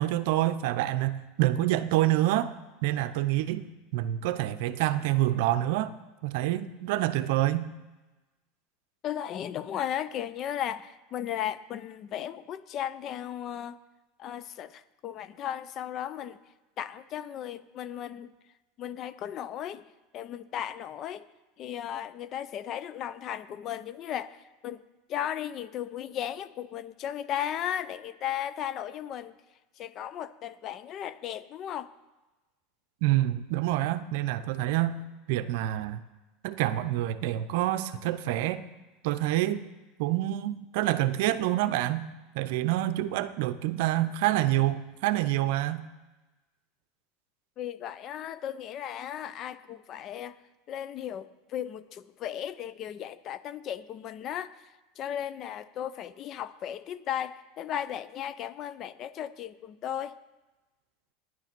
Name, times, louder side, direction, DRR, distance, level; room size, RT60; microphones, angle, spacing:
voice 1, 0.0-2.5 2.8-3.6 3.9-5.9 6.2-7.7 33.0-35.0 35.3-36.0 36.4-38.6 39.0-39.6 40.0-42.1 42.3-45.8, right 14 dB, 70° right, 12 dB, 0.6 m, -27 dB
voice 2, 9.0-13.8 14.2-16.4 16.8-18.3 18.8-19.8 20.1-21.3 21.6-24.4 24.6-24.8 25.1-29.3 29.8-31.9 47.6-50.4 50.7-54.5 55.0-60.2, left 10 dB, 45° left, 15 dB, 0.5 m, -35 dB
9.9 x 9.8 x 5.9 m, 1.1 s
supercardioid pair, 110°, 0 cm